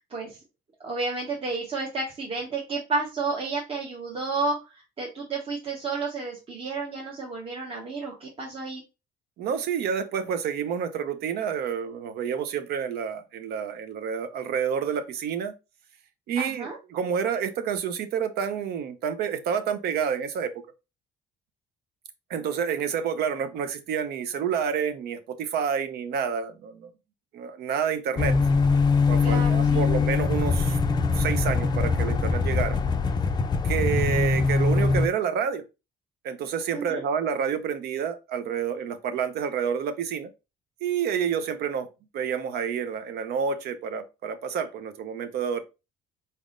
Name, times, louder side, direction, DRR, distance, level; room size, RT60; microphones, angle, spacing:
voice 1, 0.8-8.8 16.4-16.8 29.2-29.8 36.7-37.0, right 3 dB, 35° right, 1.0 m, -31 dB
voice 2, 9.4-15.5 16.3-20.5 22.3-26.9 27.3-28.4 29.1-30.8 31.1-32.8 33.6-35.6 36.2-40.3 40.8-41.9 42.1-45.6, right 7 dB, 70° right, 0.6 m, -29 dB
sound 1, 28.2-35.1, left 4 dB, 25° left, 0.4 m, -22 dB
4.1 x 3.5 x 2.5 m
cardioid pair, 110°, 17 cm